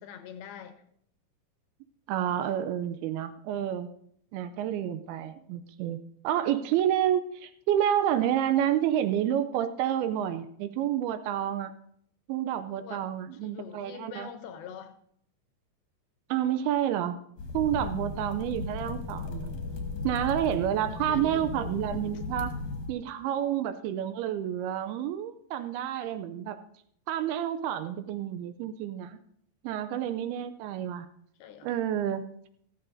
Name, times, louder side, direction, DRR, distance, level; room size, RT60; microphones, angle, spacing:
voice 1, 0.0-0.8 12.7-13.1 13.4-15.0 21.1-21.6 31.4-31.7, left 8 dB, 80° left, 2.6 m, -44 dB
voice 2, 2.1-3.9 4.3-6.0 6.2-11.7 12.3-14.3 16.3-17.2 17.5-19.5 20.0-22.6 22.9-26.6 27.1-29.2 29.6-31.1 31.6-32.3, right 10 dB, 80° right, 2.4 m, -29 dB
sound 1, 17.4-22.9, left 3 dB, 60° left, 2.2 m, -36 dB
14.5 x 14.0 x 2.7 m
omnidirectional pair, 4.6 m